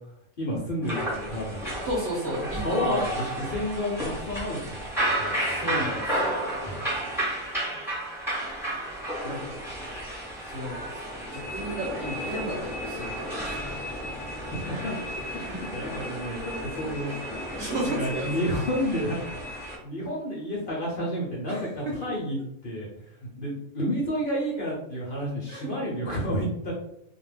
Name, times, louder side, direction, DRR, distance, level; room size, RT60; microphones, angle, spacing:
voice 1, 0.4-1.8 2.5-4.9 5.2-5.5 5.9-6.0 6.6-6.8 9.4-10.2 14.5-14.9 15.3-17.1 18.0-19.4 19.8-26.7, equal, 50° left, -4 dB, 0.7 m, -31 dB
sound 1, 0.8-19.8, right 1 dB, ahead, 1.0 m, -32 dB
voice 2, 1.8-3.2 5.4-6.5 9.2-9.4 10.5-13.9 15.4-15.6 17.6-18.5 21.5-21.9 25.5-25.7, equal, 60° right, -4 dB, 0.9 m, -33 dB
2.3 x 2.2 x 3.2 m, 0.75 s
omnidirectional pair, 1.5 m